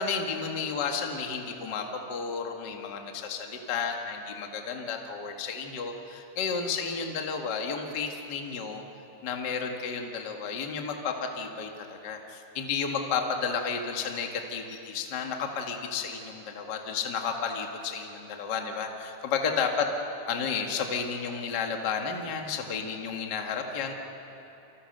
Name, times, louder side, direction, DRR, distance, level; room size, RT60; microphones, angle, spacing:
voice 1, 0.0-8.8 9.2-19.9 20.3-23.9, left 5 dB, 40° left, 3 dB, 1.6 m, -32 dB
29.0 x 26.0 x 6.7 m, 3.0 s
omnidirectional pair, 4.6 m